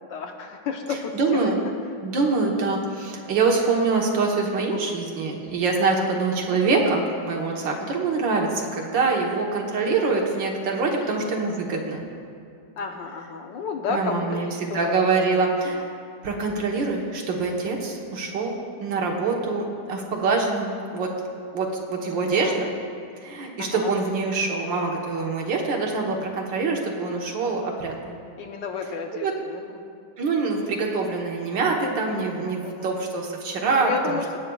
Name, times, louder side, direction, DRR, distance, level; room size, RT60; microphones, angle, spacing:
voice 1, 0.1-1.7 4.7-5.0 5.8-6.1 8.6-8.7 11.0-11.3 12.8-15.1 22.4-22.5 23.6-23.9 28.4-29.8 32.4-33.1 33.8-34.4, left 5 dB, 70° left, 3 dB, 1.5 m, -32 dB
voice 2, 0.9-1.6 2.0-12.1 13.9-15.9 16.2-21.1 21.5-22.8 23.2-28.2 29.1-29.3 30.2-34.4, right 4 dB, 70° right, 0 dB, 1.9 m, -25 dB
22.0 x 8.7 x 2.3 m, 2.5 s
omnidirectional pair, 2.1 m